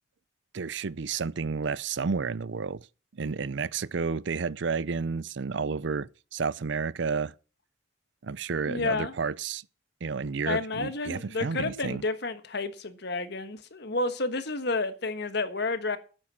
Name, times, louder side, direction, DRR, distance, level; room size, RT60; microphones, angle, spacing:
voice 1, 0.5-2.9 3.2-7.3 8.2-9.6 10.0-12.0, right 5 dB, 60° right, 0.5 m, -31 dB
voice 2, 8.7-9.1 10.4-16.0, left 3 dB, 55° left, 1.4 m, -30 dB
10.5 x 8.7 x 7.5 m
head